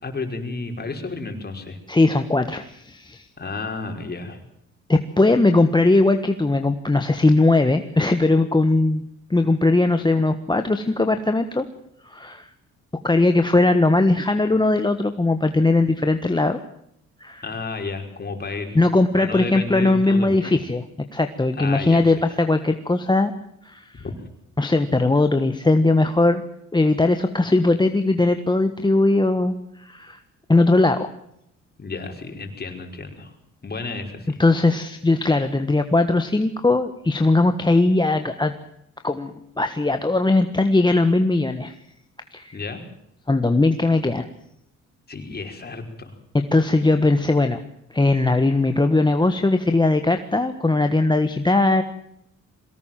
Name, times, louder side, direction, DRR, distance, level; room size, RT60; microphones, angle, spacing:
voice 1, 0.0-1.8 3.4-4.4 17.4-18.8 19.2-20.5 21.5-22.4 23.9-24.1 31.8-33.3 33.6-34.4 42.5-42.8 45.1-46.1, left 3 dB, 30° left, 4 dB, 5.4 m, -32 dB
voice 2, 1.9-3.3 4.9-9.0 9.3-11.6 12.0-12.5 13.0-16.6 17.2-17.4 18.7-20.8 21.1-23.3 23.6-24.0 24.6-26.4 26.7-30.2 30.5-31.1 34.4-38.5 39.0-41.7 42.3-42.6 43.3-44.3 46.3-47.6 47.9-51.8, left 2 dB, 15° left, 7 dB, 1.5 m, -19 dB
22.5 x 18.5 x 7.6 m, 0.77 s
cardioid pair, 90°, 30 cm